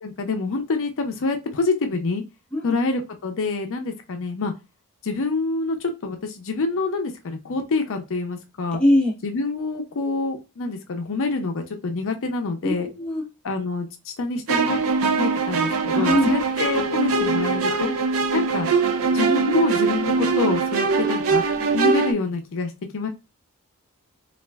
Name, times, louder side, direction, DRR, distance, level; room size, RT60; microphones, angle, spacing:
voice 1, 0.0-2.2 2.6-4.5 5.0-8.8 9.2-12.9 13.4-17.9 18.3-18.7 19.1-21.4 21.7-23.1, left 3 dB, 60° left, 5 dB, 0.5 m, -26 dB
voice 2, 8.7-9.1 12.6-13.2 15.9-16.3, left 1 dB, 5° left, -1 dB, 0.6 m, -21 dB
sound 1, 14.5-22.1, right 4 dB, 65° right, 0.4 m, -22 dB
2.4 x 2.2 x 3.3 m, 0.27 s
head